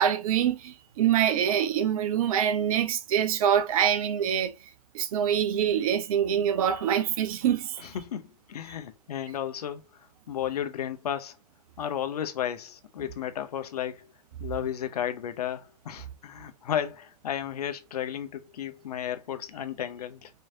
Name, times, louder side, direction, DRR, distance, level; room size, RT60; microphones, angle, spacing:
voice 1, 0.0-4.5 4.9-7.9, right 9 dB, 55° right, 0.8 m, -25 dB
voice 2, 7.8-11.4 11.8-14.1 14.4-20.3, left 10 dB, 65° left, 0.7 m, -33 dB
4.4 x 3.1 x 2.7 m
figure-of-eight pair, 100°, 21 cm